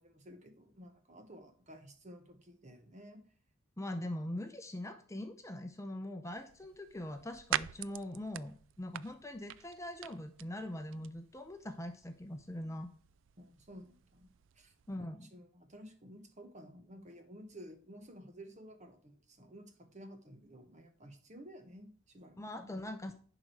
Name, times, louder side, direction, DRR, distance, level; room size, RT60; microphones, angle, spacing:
voice 1, 0.0-3.2 13.4-14.7 15.0-22.7, equal, 40° right, 6 dB, 1.4 m, -53 dB
voice 2, 3.8-12.9 14.9-15.3 22.4-23.1, left 1 dB, 15° left, 7 dB, 0.7 m, -42 dB
sound 1, 6.3-15.0, right 11 dB, 75° right, 0.3 m, -45 dB
10.5 x 5.0 x 4.7 m, 0.44 s
head